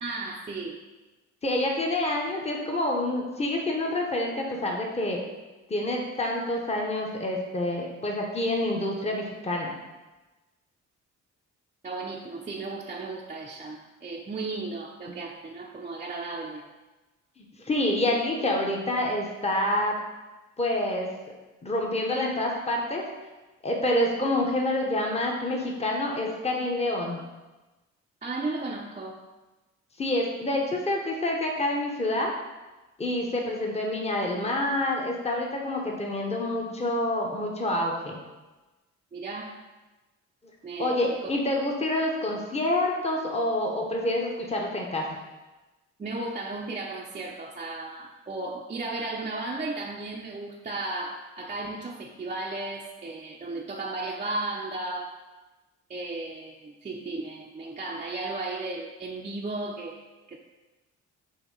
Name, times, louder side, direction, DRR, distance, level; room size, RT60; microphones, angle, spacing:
voice 1, 0.0-0.8 11.8-16.6 28.2-29.2 39.1-39.5 40.6-41.1 46.0-55.1 55.9-60.4, right 2 dB, 25° right, -2 dB, 0.6 m, -35 dB
voice 2, 1.4-5.2 5.7-9.8 17.4-19.9 20.6-21.1 21.6-23.1 23.6-27.2 30.0-32.3 33.0-38.2 40.8-45.0, left 1 dB, 20° left, 0 dB, 1.1 m, -27 dB
6.9 x 2.8 x 5.5 m, 1.1 s
cardioid pair, 90°, 30 cm